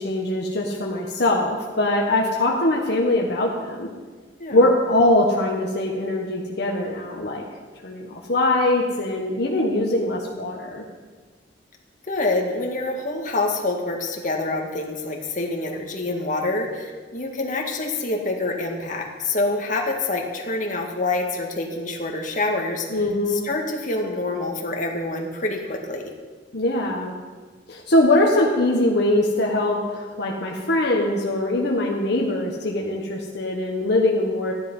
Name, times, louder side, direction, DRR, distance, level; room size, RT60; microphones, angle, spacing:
voice 1, 0.0-3.9 4.5-7.4 7.8-10.8 22.9-23.4 26.5-27.2 27.7-34.5, left 1 dB, 60° left, -1 dB, 1.5 m, -22 dB
voice 2, 12.1-22.9 23.3-26.0, left 2 dB, 45° left, 1 dB, 1.9 m, -26 dB
14.5 x 11.0 x 5.5 m, 1.4 s
head